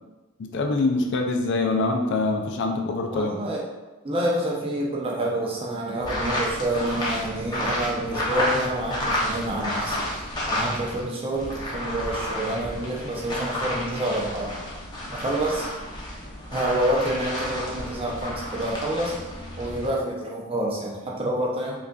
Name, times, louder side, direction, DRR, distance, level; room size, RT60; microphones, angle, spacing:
voice 1, 0.4-3.3, left 3 dB, 55° left, 3 dB, 0.4 m, -24 dB
voice 2, 3.1-3.6 4.0-10.1 10.4-14.6 15.1-15.7 16.5-19.2 19.6-21.8, right 1 dB, 25° right, -3 dB, 0.6 m, -28 dB
sound 1, 6.0-11.0 11.3-19.9, left 1 dB, 20° left, 0.7 m, -31 dB
5.1 x 2.5 x 2.3 m, 1.2 s
head